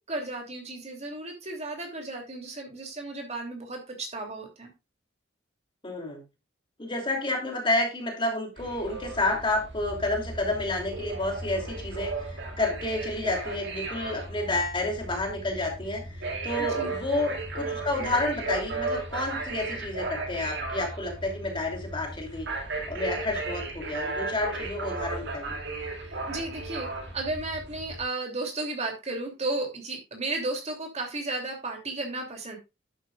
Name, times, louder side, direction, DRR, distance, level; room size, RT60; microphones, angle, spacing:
voice 1, 0.1-4.7 16.6-16.9 26.0-26.9 27.1-32.6, right 2 dB, 35° right, 2 dB, 2.9 m, -34 dB
voice 2, 5.8-6.2 6.8-22.5 22.9-25.6, left 2 dB, 25° left, 2 dB, 3.0 m, -30 dB
sound 1, 8.6-28.0, right 3 dB, 65° right, 2.3 m, -35 dB
11.0 x 9.5 x 2.4 m, 0.25 s
head